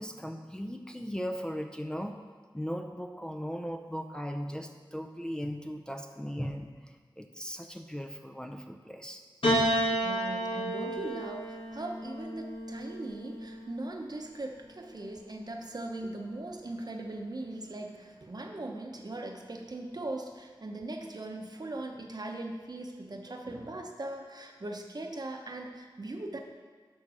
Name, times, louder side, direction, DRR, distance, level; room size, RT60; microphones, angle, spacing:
voice 1, 0.0-2.2 2.5-9.2, equal, 10° left, 5 dB, 0.6 m, -38 dB
Piano, 9.4-13.9 14.9-15.7, right 1 dB, 80° left, 2.1 m, -32 dB
voice 2, 10.0-26.4, right 2 dB, 50° right, 2 dB, 1.0 m, -39 dB
11.0 x 3.9 x 6.4 m, 1.5 s
wide cardioid pair, 55°, 9 cm